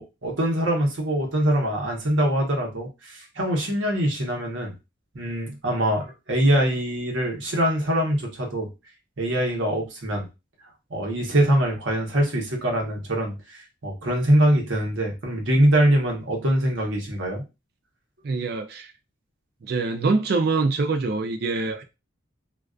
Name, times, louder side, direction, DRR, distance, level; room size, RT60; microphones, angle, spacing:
voice 1, 0.0-4.8 5.1-8.7 9.2-10.3 10.9-17.4, right 1 dB, 75° right, 0.8 m, -23 dB
voice 2, 18.2-18.9 19.6-21.8, right 3 dB, 50° right, 0.3 m, -24 dB
2.4 x 2.2 x 2.3 m
head